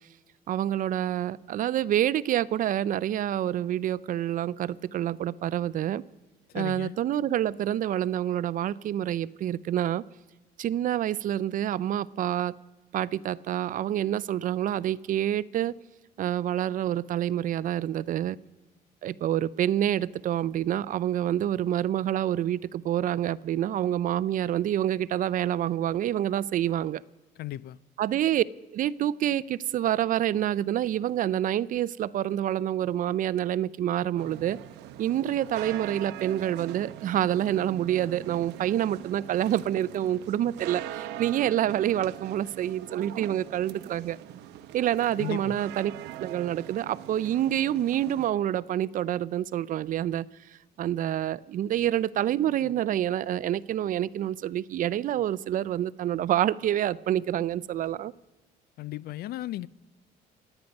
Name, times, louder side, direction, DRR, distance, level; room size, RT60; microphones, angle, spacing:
voice 1, 0.5-6.0 6.5-10.0 10.6-12.5 12.9-15.7 16.2-18.4 19.0-27.0 28.0-28.4 28.7-34.6 35.0-44.2 44.7-45.9 46.2-50.3 50.8-58.1, right 11 dB, 55° right, 0.5 m, -27 dB
voice 2, 6.5-7.0 27.4-27.8 45.1-45.6 58.8-59.7, left 15 dB, 65° left, 0.4 m, -35 dB
sound 1, 34.2-48.3, right 12 dB, 85° right, 0.7 m, -42 dB
27.0 x 9.1 x 5.3 m
cardioid pair, 110°, 17 cm